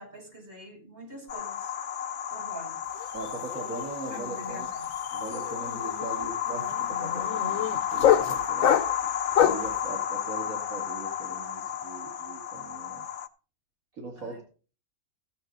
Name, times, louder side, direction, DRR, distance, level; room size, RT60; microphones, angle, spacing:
voice 1, 0.0-1.7 2.3-2.8 4.1-4.8 14.2-14.4, equal, 45° right, -1 dB, 5.9 m, -45 dB
sound 1, 1.3-13.3, left 9 dB, 60° left, 1.2 m, -32 dB
sound 2, 3.0-3.3 3.5-9.8, left 9 dB, 85° left, 1.3 m, -27 dB
voice 2, 3.1-4.7 5.1-8.8 9.4-13.0 13.9-14.4, right 3 dB, 85° right, 1 dB, 2.6 m, -40 dB
15.0 x 8.7 x 3.9 m, 0.36 s
omnidirectional pair, 1.4 m